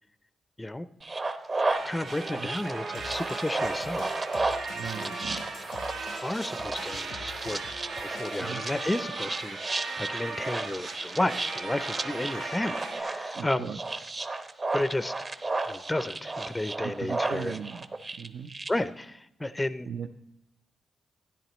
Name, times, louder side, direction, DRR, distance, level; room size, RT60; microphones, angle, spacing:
sound 1, 1.0-18.7, right 3 dB, 40° right, 0.8 m, -34 dB
sound 2, 1.7-13.0, right 3 dB, 90° right, 1.5 m, -38 dB
voice 1, 1.8-4.1 5.0-5.1 6.2-7.7 8.0-13.7 14.7-15.2 15.7-17.5 18.7-19.9, left 1 dB, 15° left, 13 dB, 0.4 m, -32 dB
sound 3, 2.9-8.5, left 6 dB, 85° left, 0.7 m, -47 dB
voice 2, 4.7-5.4 8.4-8.6 13.3-13.8 16.8-17.9 18.2-18.5 19.8-20.1, right 7 dB, 70° right, 5 dB, 0.5 m, -37 dB
12.5 x 10.5 x 3.0 m, 0.83 s
cardioid pair, 60°, 0 cm